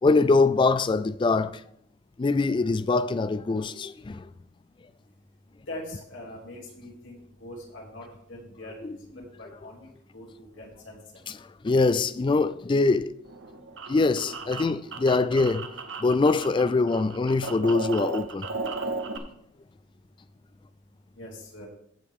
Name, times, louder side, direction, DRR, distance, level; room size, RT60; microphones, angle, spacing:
voice 1, 0.0-1.6 2.2-4.3 8.8-9.0 11.3-11.4 11.6-13.2 13.9-15.7 16.0-18.5, left 3 dB, 25° left, 0.3 m, -23 dB
voice 2, 5.7-11.0 21.1-21.7, left 1 dB, 80° left, 3.0 m, -43 dB
sound 1, 13.3-16.6 16.9-19.2, right 3 dB, 75° right, 1.0 m, -35 dB
15.0 x 5.1 x 3.7 m
head